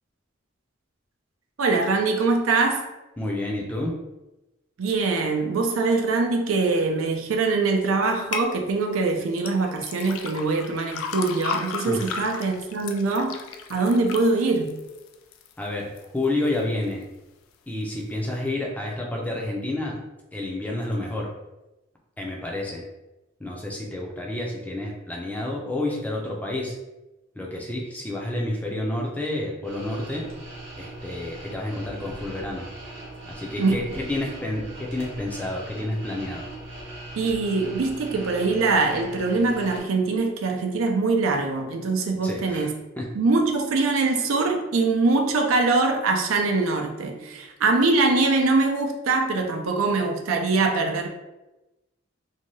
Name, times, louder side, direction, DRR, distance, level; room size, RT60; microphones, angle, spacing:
voice 1, 1.6-2.9 4.8-13.4 13.7-14.8 33.6-33.8 37.2-42.7 43.1-51.1, right 3 dB, 85° right, 3 dB, 0.5 m, -23 dB
voice 2, 3.2-3.9 11.8-12.2 15.6-17.0 17.7-20.0 20.3-21.3 22.2-22.8 23.4-26.8 27.4-30.2 30.8-32.7 33.2-36.4 42.2-42.7 43.0-43.1, left 1 dB, 10° left, -1 dB, 0.4 m, -29 dB
sound 1, 8.3-8.5 9.4-15.5 16.0-16.5 17.0-17.1, left 5 dB, 85° left, 0.3 m, -34 dB
sound 2, 29.6-39.8, right 1 dB, 55° right, 0.8 m, -40 dB
2.7 x 2.2 x 3.0 m, 1.0 s
head